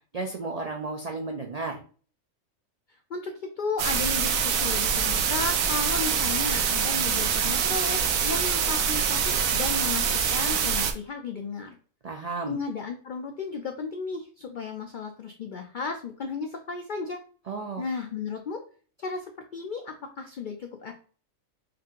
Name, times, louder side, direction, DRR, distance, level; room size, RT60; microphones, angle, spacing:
voice 1, 0.1-1.8 12.0-12.6 17.5-17.8, right 3 dB, 75° right, 1 dB, 0.3 m, -33 dB
voice 2, 3.1-11.7 12.5-17.2 17.8-18.6 19.0-20.9, left 4 dB, 85° left, 4 dB, 0.4 m, -34 dB
sound 1, 3.8-10.9, right 7 dB, 90° right, 1.0 m, -25 dB
5.0 x 2.5 x 2.8 m, 0.41 s
omnidirectional pair, 1.4 m